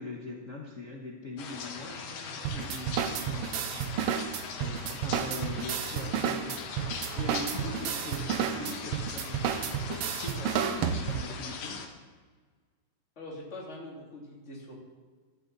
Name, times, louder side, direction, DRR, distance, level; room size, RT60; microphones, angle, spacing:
voice 1, 0.0-4.1 4.5-11.8, left 2 dB, 65° left, -1 dB, 0.7 m, -42 dB
sound 1, 1.4-11.9, left 5 dB, 90° left, 3.0 m, -40 dB
sound 2, 2.4-11.4, right 8 dB, 80° right, 1.4 m, -31 dB
sound 3, 5.8-11.5, right 1 dB, 10° right, 5.0 m, -50 dB
voice 2, 13.2-14.7, left 1 dB, 20° left, -4 dB, 3.2 m, -43 dB
15.0 x 13.0 x 4.2 m, 1.5 s
omnidirectional pair, 3.6 m